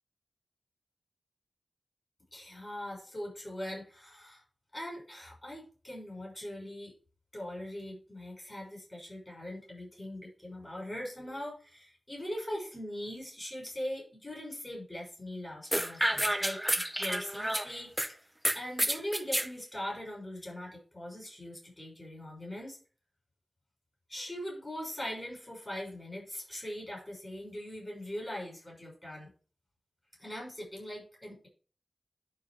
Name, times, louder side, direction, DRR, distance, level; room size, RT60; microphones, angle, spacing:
voice 1, 2.3-4.4 4.7-6.9 7.3-16.7 17.0-22.8 24.1-29.3 30.2-31.5, left 1 dB, 25° left, -3 dB, 5.9 m, -41 dB
sound 1, 15.7-18.1 18.4-19.5, equal, 5° right, 0.8 m, -30 dB
11.0 x 5.1 x 5.1 m, 0.39 s
wide cardioid pair, 90°, 0 cm